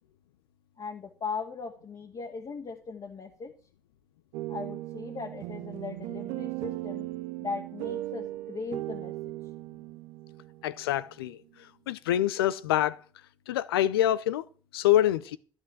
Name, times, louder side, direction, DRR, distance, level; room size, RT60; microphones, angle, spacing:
voice 1, 0.8-3.5 4.5-7.1 7.4-9.1, left 5 dB, 40° left, 1.9 m, -38 dB
sound 1, 4.3-11.3, right 18 dB, 70° right, 0.5 m, -37 dB
voice 2, 10.6-11.4 11.9-13.0 13.5-14.4 14.7-15.4, left 12 dB, 80° left, 0.6 m, -25 dB
12.5 x 6.0 x 7.6 m
figure-of-eight pair, 50°, 12 cm